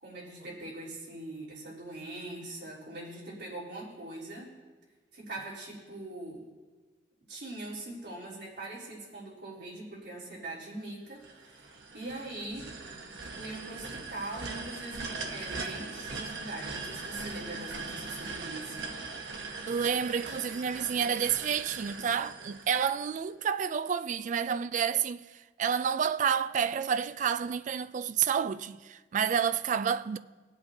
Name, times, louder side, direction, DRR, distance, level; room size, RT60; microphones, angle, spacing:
voice 1, 0.0-4.5 5.1-6.4 7.3-12.7 13.2-19.0, right 2 dB, 70° right, 3.5 m, -42 dB
sound 1, 11.2-23.3, right 3 dB, 85° right, 1.0 m, -40 dB
voice 2, 19.7-30.2, right 7 dB, 45° right, 0.3 m, -29 dB
20.5 x 8.1 x 2.7 m
head